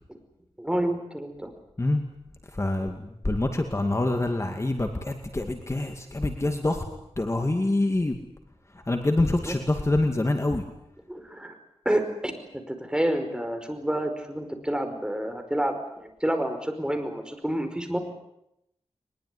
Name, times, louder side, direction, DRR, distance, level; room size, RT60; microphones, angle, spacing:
voice 1, 0.6-1.5 2.8-2.9 9.4-9.5 11.1-11.6 11.8-18.0, right 1 dB, 10° right, 6 dB, 5.0 m, -29 dB
voice 2, 2.5-6.8 7.2-8.2 8.7-10.6, left 2 dB, 25° left, 5 dB, 2.3 m, -26 dB
22.5 x 21.5 x 9.7 m, 0.82 s
wide cardioid pair, 90°, 10 cm